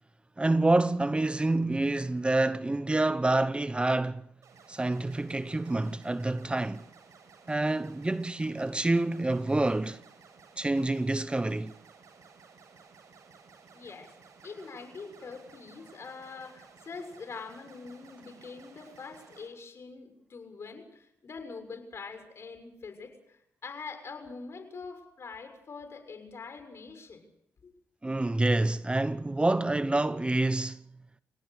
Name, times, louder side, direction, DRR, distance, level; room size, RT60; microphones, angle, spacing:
voice 1, 0.4-4.2 4.7-6.8 7.5-10.0 10.6-11.7 28.0-30.8, right 2 dB, 20° right, 1.0 m, -27 dB
sound 1, 4.4-19.5, right 5 dB, 75° right, 7.2 m, -56 dB
voice 2, 13.7-14.1 14.4-27.2 27.6-27.7, left 4 dB, 55° left, 6.6 m, -44 dB
29.5 x 18.0 x 6.7 m
cardioid pair, 65°, 5 cm